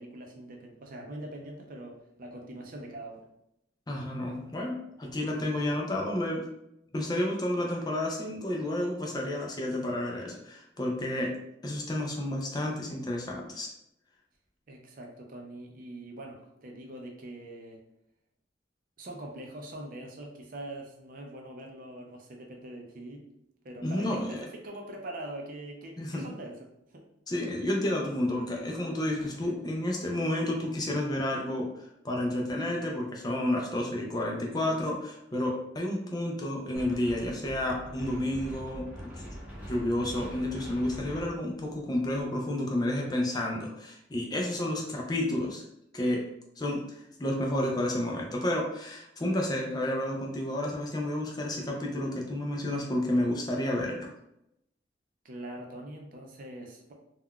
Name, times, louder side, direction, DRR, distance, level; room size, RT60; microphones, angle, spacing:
voice 1, 0.0-3.3 14.7-17.8 19.0-23.3 23.6-26.6 26.9-27.0 29.2-29.6 44.5-44.7 55.2-56.9, right 1 dB, 50° right, 1 dB, 0.5 m, -43 dB
voice 2, 3.9-6.5 6.9-11.3 11.6-13.7 23.8-24.5 26.0-26.2 27.3-38.9 39.2-39.3 39.6-45.6 45.9-46.2 46.6-54.1, left 1 dB, 20° left, 0 dB, 0.4 m, -31 dB
Wind, 36.7-42.2, equal, 10° right, 0.7 m, -43 dB
3.6 x 2.3 x 2.2 m, 0.81 s
head